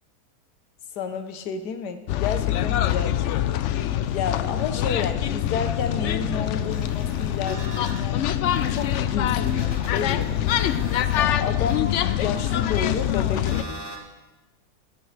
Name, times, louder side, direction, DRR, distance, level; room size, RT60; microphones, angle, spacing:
voice 1, 0.9-3.5 4.1-8.3 8.7-10.3 11.2-13.9, left 6 dB, 90° left, 8 dB, 1.5 m, -31 dB
sound 1, 2.1-13.6, left 11 dB, 70° left, 0.7 m, -24 dB
sound 2, 6.0-8.0 8.5-14.0, right 1 dB, 15° right, 1.5 m, -41 dB
16.5 x 13.0 x 3.3 m, 1.2 s
omnidirectional pair, 1.7 m